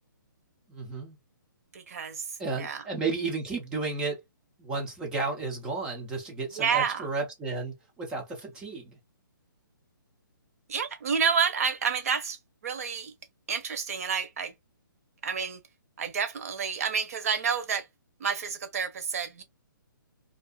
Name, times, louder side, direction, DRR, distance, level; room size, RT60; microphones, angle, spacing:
voice 1, 0.7-1.2 2.4-4.2 4.6-9.0, right 3 dB, 5° right, 0.4 m, -33 dB
voice 2, 1.7-2.3 2.6-2.8 6.6-7.1 10.7-12.4 12.6-13.1 13.5-14.5 15.2-15.6 16.0-17.9 18.2-19.4, right 6 dB, 45° right, 0.7 m, -29 dB
2.5 x 2.3 x 2.2 m
hypercardioid pair, 165°, 11 cm